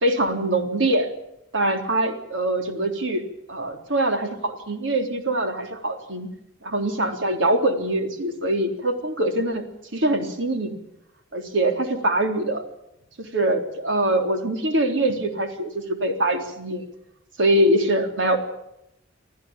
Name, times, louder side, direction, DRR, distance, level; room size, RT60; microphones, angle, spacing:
voice 1, 0.0-1.1 1.5-6.3 6.6-10.8 11.3-12.6 13.2-16.8 17.4-18.4, right 1 dB, 80° right, 5 dB, 3.7 m, -23 dB
26.0 x 15.0 x 8.9 m, 0.83 s
head